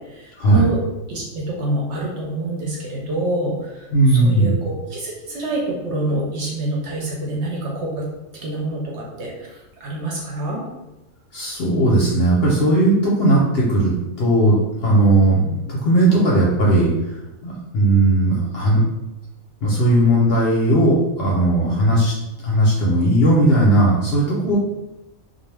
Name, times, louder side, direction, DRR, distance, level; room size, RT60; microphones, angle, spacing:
voice 1, 0.1-0.8 1.1-8.1 8.4-10.6 21.6-22.0 24.4-24.6, right 1 dB, 65° right, -2 dB, 0.7 m, -26 dB
voice 2, 3.9-4.6 11.3-13.9 14.2-16.9 17.4-18.8 19.6-22.1 22.4-24.6, right 1 dB, 60° left, -5 dB, 0.7 m, -17 dB
2.4 x 2.1 x 3.2 m, 0.96 s
omnidirectional pair, 1.4 m